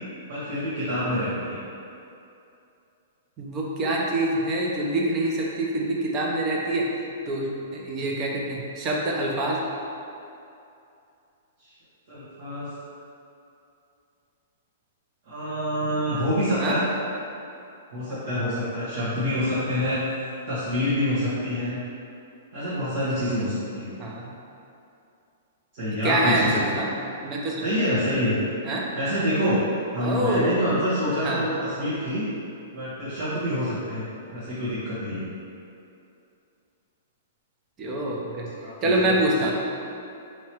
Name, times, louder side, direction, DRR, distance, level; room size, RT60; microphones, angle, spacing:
voice 1, 0.3-1.6 12.1-12.7 15.3-16.8 17.9-20.0 20.5-21.8 22.5-24.0 25.7-26.6 27.6-28.4 28.9-29.6 29.9-32.2 32.7-34.0 34.3-35.3 38.6-38.9, equal, 60° right, -14 dB, 1.4 m, -26 dB
voice 2, 3.4-6.8 7.3-9.6 16.6-16.7 24.0-24.3 26.0-26.9 27.2-27.7 28.6-28.8 30.0-30.5 31.2-31.4 37.8-38.5 38.8-39.5, right 1 dB, 30° right, -3 dB, 0.7 m, -25 dB
4.6 x 3.0 x 3.0 m, 2.6 s
hypercardioid pair, 140°, 0 cm